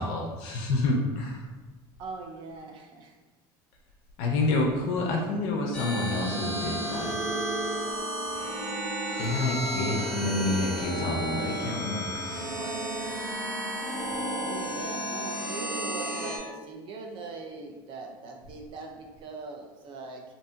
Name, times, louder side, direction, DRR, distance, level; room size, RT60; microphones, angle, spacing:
voice 1, 0.0-1.4 4.2-7.2 9.2-12.9, left 2 dB, 70° left, 0 dB, 0.5 m, -29 dB
voice 2, 2.0-3.2 14.3-20.2, right 3 dB, 50° right, 2 dB, 0.5 m, -41 dB
sound 1, 5.7-16.4, right 1 dB, 10° left, 0.8 m, -32 dB
2.7 x 2.6 x 2.3 m, 1.2 s
cardioid pair, 125°, 11 cm